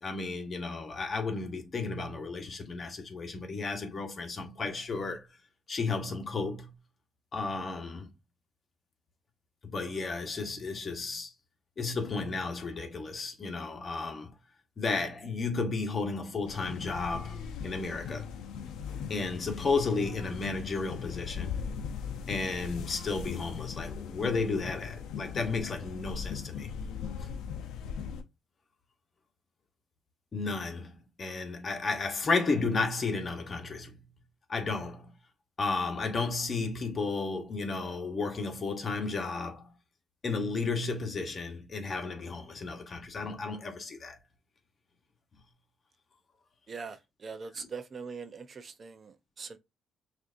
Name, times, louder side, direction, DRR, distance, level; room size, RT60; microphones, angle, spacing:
voice 1, 0.0-5.3 5.7-6.7 7.3-8.1 9.6-11.3 11.8-14.3 14.8-18.3 19.1-21.6 22.3-26.7 27.2-27.4 30.3-34.1 34.5-35.1 35.6-39.7 40.2-44.2 47.6-47.7, left 4 dB, 40° left, 1.1 m, -33 dB
sound 1, 16.5-28.2, left 7 dB, 90° left, 0.6 m, -39 dB
voice 2, 46.7-49.6, right 5 dB, 45° right, 0.5 m, -42 dB
6.2 x 2.6 x 2.5 m
cardioid pair, 90°, 0 cm